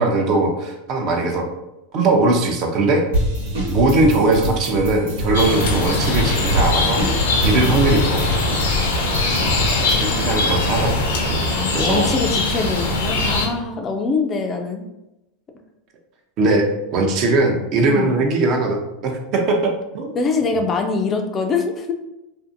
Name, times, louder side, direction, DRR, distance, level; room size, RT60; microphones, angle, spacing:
voice 1, 0.0-1.4 1.9-3.1 3.7-7.0 7.4-8.4 9.9-11.5 11.7-12.1 16.4-20.2, right 2 dB, 45° right, 2 dB, 0.5 m, -20 dB
sound 1, 3.1-10.0, right 1 dB, 80° right, 1.1 m, -24 dB
sound 2, 5.3-13.5, left 2 dB, 80° left, 0.6 m, -21 dB
voice 2, 9.3-9.9 11.5-14.8 17.9-18.1 20.2-21.9, left 4 dB, 30° left, 4 dB, 0.3 m, -24 dB
2.6 x 2.4 x 2.5 m, 0.94 s
hypercardioid pair, 115°, 0 cm